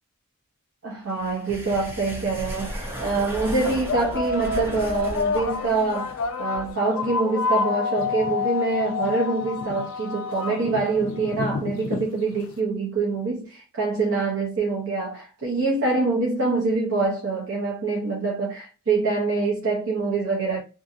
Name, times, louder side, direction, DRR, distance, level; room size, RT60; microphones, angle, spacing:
voice 1, 0.8-6.1 6.4-20.6, right 3 dB, 60° right, 0.7 m, -25 dB
sound 1, 1.1-6.7, equal, 10° right, 0.5 m, -36 dB
sound 2, 1.6-1.7 2.6-2.8 3.6-12.5, left 5 dB, 65° left, 0.4 m, -28 dB
2.6 x 2.6 x 2.4 m
head